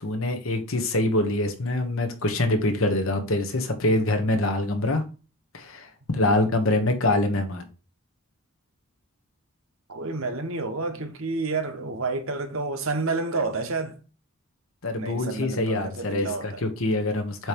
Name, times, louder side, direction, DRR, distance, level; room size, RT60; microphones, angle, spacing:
voice 1, 0.0-5.0 5.5-7.6 14.8-17.5, left 2 dB, 65° left, 1.3 m, -25 dB
voice 2, 9.9-14.0 15.0-16.6, right 3 dB, 65° right, 1.1 m, -30 dB
7.8 x 3.1 x 5.1 m
head